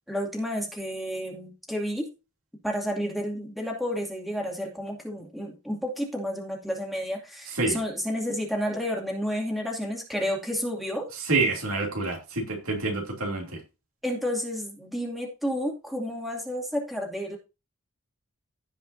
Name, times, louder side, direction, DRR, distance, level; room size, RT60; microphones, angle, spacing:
voice 1, 0.1-2.1 2.6-11.1 14.0-17.4, equal, ahead, 2.5 m, -31 dB
voice 2, 11.3-13.6, right 3 dB, 75° right, 2.8 m, -27 dB
16.0 x 5.5 x 2.7 m
head